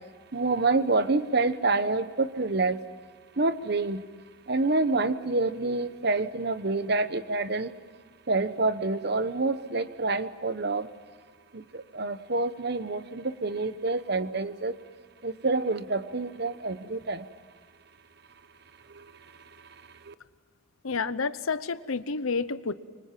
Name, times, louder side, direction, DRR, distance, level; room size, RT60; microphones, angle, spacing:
voice 1, 0.3-2.8 3.4-4.0 4.5-7.7 8.3-10.9 11.5-14.8 15.2-17.3 18.9-19.1 20.0-20.1, right 3 dB, 50° right, 13 dB, 1.0 m, -27 dB
voice 2, 20.8-22.7, left 4 dB, 85° left, 14 dB, 0.9 m, -29 dB
25.0 x 25.0 x 7.5 m, 1.5 s
head